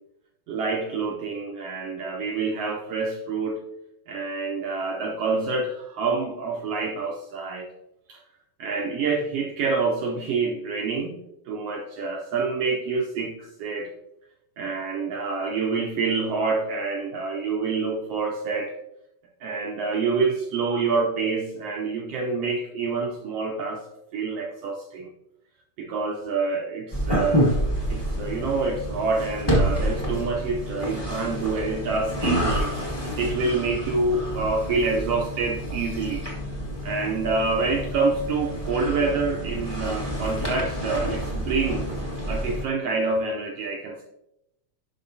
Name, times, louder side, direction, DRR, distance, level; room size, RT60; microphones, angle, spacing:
voice 1, 0.5-3.6 4.1-7.7 8.1-8.2 8.6-11.2 11.5-13.9 14.6-18.8 19.4-23.8 24.1-25.1 25.8-27.5 27.9-32.7 33.2-36.3 36.8-41.9 42.3-44.0, right 4 dB, 75° right, 1 dB, 1.4 m, -27 dB
sound 1, 26.9-42.7, equal, 20° left, 0.7 m, -28 dB
10.5 x 5.7 x 2.7 m, 0.82 s
omnidirectional pair, 3.6 m